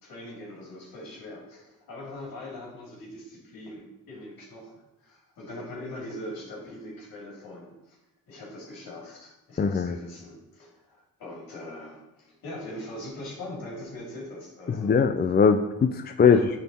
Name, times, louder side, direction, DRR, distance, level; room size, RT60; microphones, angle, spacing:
voice 1, 0.0-4.7 5.0-8.0 8.3-15.0 16.2-16.5, left 1 dB, 85° left, -3 dB, 2.8 m, -41 dB
voice 2, 9.6-9.9 14.7-16.4, left 6 dB, 30° left, 7 dB, 0.4 m, -21 dB
9.6 x 3.6 x 4.3 m, 0.93 s
cardioid pair, 70°, 34 cm